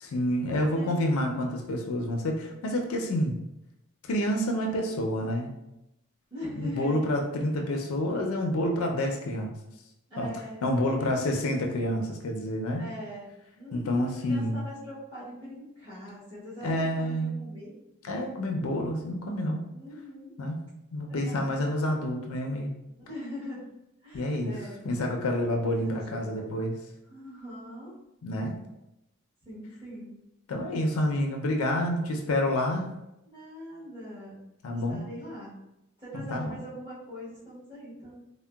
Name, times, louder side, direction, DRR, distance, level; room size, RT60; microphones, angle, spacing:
voice 1, 0.0-3.4 4.1-5.5 6.6-9.5 10.2-10.3 10.6-12.9 13.7-14.6 16.6-17.3 18.0-19.7 20.4-20.6 20.9-22.7 24.1-24.6 24.8-26.8 28.2-28.6 30.5-32.9 34.6-35.1 36.1-36.6, left 1 dB, 85° left, 2 dB, 0.4 m, -28 dB
voice 2, 0.5-1.4 6.3-7.0 7.3-7.4 10.1-10.6 12.8-17.7 19.7-20.3 21.1-21.5 23.0-23.6 24.0-24.8 25.8-26.6 27.1-27.9 29.4-30.2 33.3-34.5 34.9-35.6 36.0-38.1, left 1 dB, 20° right, -12 dB, 1.1 m, -42 dB
3.6 x 2.1 x 2.2 m, 0.89 s
head